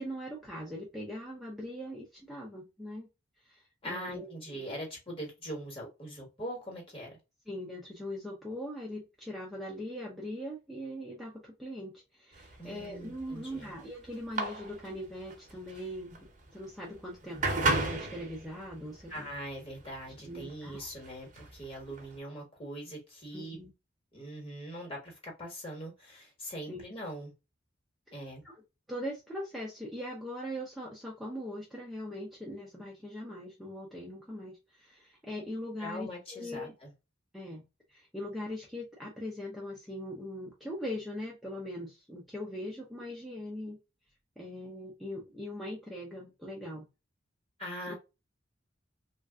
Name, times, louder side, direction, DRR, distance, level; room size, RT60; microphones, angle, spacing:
voice 1, 0.0-3.1 3.4-4.7 7.5-16.3 16.5-19.3 20.1-20.9 23.3-23.7 26.7-26.8 28.1-28.2 28.4-28.6 28.9-36.7 37.3-37.6 37.9-43.8 44.4-46.9 47.9-48.0, equal, ahead, 0.5 m, -41 dB
voice 2, 3.8-7.2 12.6-13.7 19.1-23.6 24.1-27.3 28.1-28.4 35.8-36.9 47.6-48.0, equal, 30° left, 1.4 m, -42 dB
sound 1, 12.3-22.2, right 2 dB, 40° right, 0.8 m, -35 dB
3.3 x 2.5 x 2.3 m
head